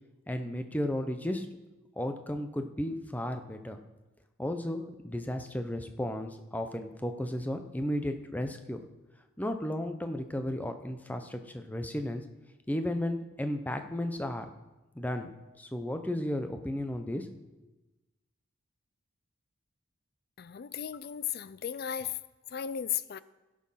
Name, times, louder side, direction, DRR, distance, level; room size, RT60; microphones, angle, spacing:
voice 1, 0.3-1.5 2.0-3.8 4.4-8.8 9.4-12.2 12.7-14.5 14.9-15.3 15.6-17.3, left 1 dB, 10° left, 7 dB, 0.7 m, -34 dB
voice 2, 20.4-22.2 22.5-23.2, left 9 dB, 50° left, 16 dB, 0.4 m, -35 dB
16.5 x 7.5 x 5.7 m, 1.1 s
head